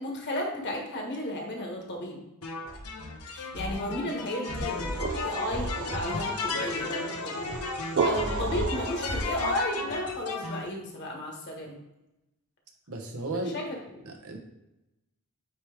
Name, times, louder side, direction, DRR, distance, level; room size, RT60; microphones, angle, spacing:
voice 1, 0.0-2.2 3.3-7.5 7.8-11.8 13.3-13.7 13.9-14.0, left 1 dB, 50° left, 0 dB, 1.5 m, -34 dB
sound 1, 2.4-10.6, left 2 dB, 85° left, 1.0 m, -33 dB
sound 2, 4.6-9.6, right 5 dB, 50° right, 0.4 m, -34 dB
voice 2, 12.9-13.5 14.0-14.4, right 2 dB, 75° right, 3 dB, 1.1 m, -34 dB
9.2 x 3.1 x 3.5 m, 0.94 s
head